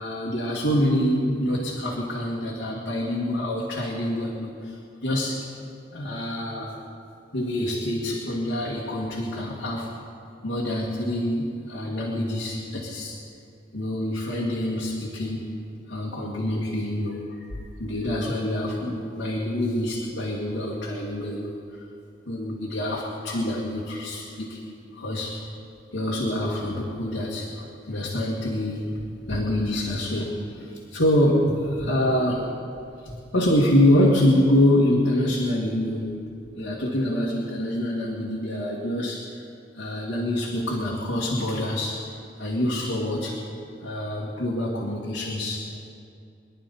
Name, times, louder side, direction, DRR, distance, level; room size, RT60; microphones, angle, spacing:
voice 1, 0.0-4.8 5.0-5.5 5.9-6.7 7.3-9.9 10.4-13.2 13.7-15.5 15.9-17.5 17.8-21.6 22.3-24.6 24.9-25.4 25.9-29.0 29.3-32.5 33.0-36.1 36.6-39.3 39.8-42.0 42.4-43.4 43.8-45.7, left 1 dB, 85° left, -4 dB, 2.1 m, -26 dB
24.0 x 11.5 x 4.3 m, 2.5 s
head